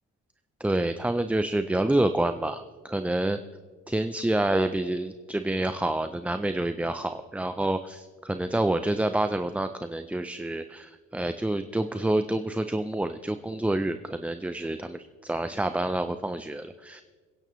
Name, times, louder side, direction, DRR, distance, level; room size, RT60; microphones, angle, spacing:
voice 1, 0.6-3.4 3.9-17.0, right 1 dB, 5° right, 10 dB, 0.4 m, -28 dB
27.5 x 10.5 x 3.1 m, 1.5 s
cardioid pair, 90°, 30 cm